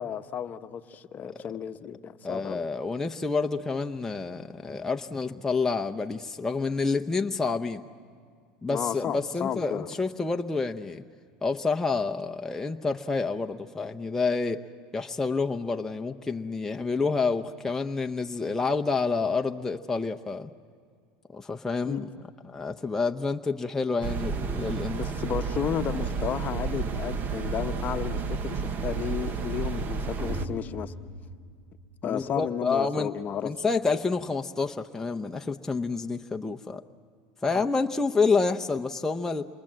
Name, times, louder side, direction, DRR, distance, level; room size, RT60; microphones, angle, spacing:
voice 1, 0.0-2.7 8.7-9.9 21.9-22.1 24.9-30.9 32.0-33.5 37.5-37.7, left 8 dB, 35° left, 9 dB, 1.0 m, -33 dB
voice 2, 2.2-7.8 8.6-11.0 11.4-14.6 14.9-20.5 21.3-22.1 22.4-25.0 32.0-33.1 33.4-36.8 37.4-39.5, left 4 dB, 10° left, 4 dB, 0.7 m, -28 dB
sound 1, 24.0-30.5, right 5 dB, 40° right, 1.2 m, -31 dB
sound 2, 30.2-32.3, equal, 15° right, 4.1 m, -40 dB
27.5 x 23.0 x 7.5 m, 2.2 s
supercardioid pair, 115°, 5 cm